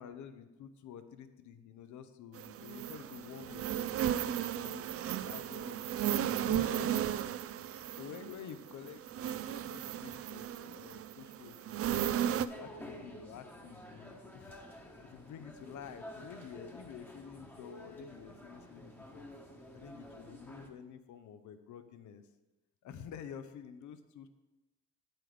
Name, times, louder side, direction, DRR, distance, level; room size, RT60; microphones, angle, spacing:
voice 1, 0.0-5.8 6.4-7.3 7.6-11.9 12.4-14.6 15.1-19.3 19.7-22.2 22.8-24.3, left 8 dB, 75° left, 10 dB, 0.7 m, -50 dB
sound 1, 2.3-12.5, right 10 dB, 50° right, 0.4 m, -35 dB
sound 2, 12.5-20.7, left 1 dB, 5° left, 1.1 m, -50 dB
8.8 x 7.9 x 3.3 m, 1.1 s
cardioid pair, 90°, 30 cm